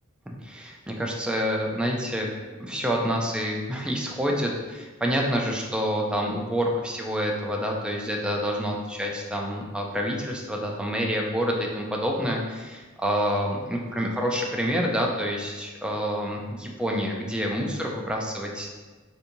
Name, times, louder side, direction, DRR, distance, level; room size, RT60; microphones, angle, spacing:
voice 1, 0.4-2.3 2.6-18.7, equal, 5° right, -1 dB, 0.4 m, -27 dB
3.8 x 2.7 x 2.6 m, 1.3 s
head